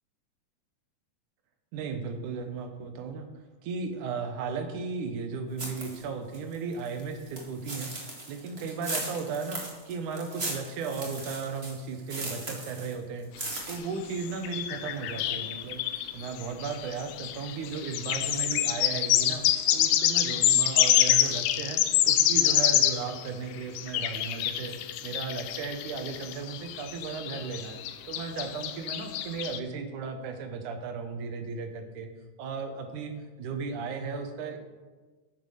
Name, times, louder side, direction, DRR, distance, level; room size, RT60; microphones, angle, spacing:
voice 1, 1.7-3.3 3.6-13.3 13.7-19.5 19.7-24.8 25.0-27.8 28.1-32.1 32.4-33.1 33.4-34.6, right 5 dB, 80° right, 6 dB, 2.5 m, -35 dB
sound 1, 5.6-6.0 6.3-12.9 13.2-13.7, right 2 dB, 25° right, 1.8 m, -37 dB
sound 2, 13.6-13.7 14.2-23.3 23.8-29.6, left 12 dB, 90° left, 2.2 m, -26 dB
9.4 x 7.5 x 6.5 m, 1.3 s
omnidirectional pair, 3.5 m